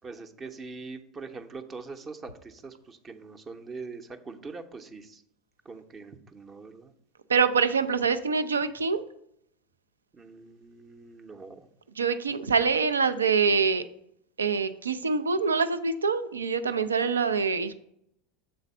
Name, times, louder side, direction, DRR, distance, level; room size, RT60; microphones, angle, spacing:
voice 1, 0.0-5.2 5.6-6.9 10.1-11.7 12.3-12.5, right 4 dB, 25° right, 7 dB, 0.7 m, -43 dB
voice 2, 7.3-9.0 12.0-13.8 14.4-17.7, right 5 dB, 85° right, 11 dB, 0.4 m, -25 dB
6.7 x 4.0 x 5.3 m, 0.74 s
figure-of-eight pair, 80°, 0 cm